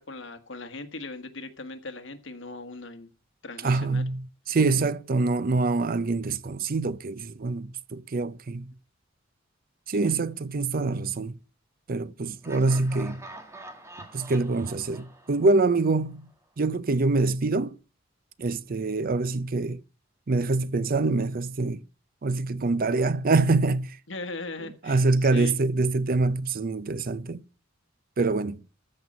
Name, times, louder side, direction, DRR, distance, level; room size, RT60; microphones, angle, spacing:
voice 1, 0.0-3.1 3.4-4.0 10.0-10.2 24.1-25.5, left 2 dB, 75° left, 1.6 m, -39 dB
voice 2, 3.6-8.7 9.9-11.4 11.9-13.2 14.1-16.3 16.6-17.8 18.4-19.8 20.3-21.8 22.2-24.0 24.8-27.4 28.2-28.6, right 3 dB, 50° right, 0.6 m, -25 dB
Laughter, 12.4-16.3, right 1 dB, 15° right, 1.8 m, -46 dB
14.0 x 5.5 x 7.5 m
head